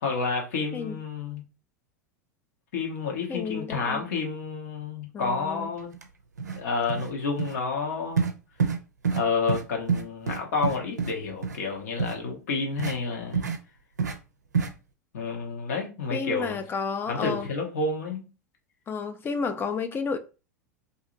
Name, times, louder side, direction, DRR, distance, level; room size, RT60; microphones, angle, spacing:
voice 1, 0.0-1.4 2.7-5.9 6.5-8.3 9.1-13.5 15.1-16.6 17.1-18.2, left 4 dB, 65° left, 1.0 m, -30 dB
voice 2, 3.3-4.0 5.1-5.7 16.1-17.5 18.9-20.2, left 5 dB, 25° left, 0.4 m, -31 dB
sound 1, 5.9-6.0 6.4-6.6 6.9-7.1 7.4-7.5 8.2-8.3 8.6-8.8 9.0-9.2 9.5-9.6 9.9-11.1 11.4-11.6 12.0-12.1 12.8-12.9 13.3-13.6 14.0-14.1 14.5-14.7, right 5 dB, 85° right, 0.4 m, -27 dB
2.8 x 2.6 x 2.5 m
figure-of-eight pair, 85°, 9 cm